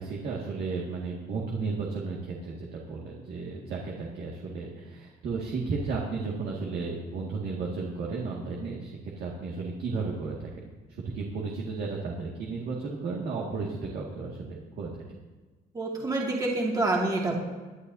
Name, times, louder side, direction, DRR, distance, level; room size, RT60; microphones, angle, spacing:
voice 1, 0.0-15.0, right 4 dB, 65° right, -2 dB, 2.1 m, -34 dB
voice 2, 15.7-17.3, right 2 dB, 20° right, -2 dB, 2.3 m, -27 dB
21.0 x 11.0 x 2.8 m, 1.3 s
cardioid pair, 110°, 17 cm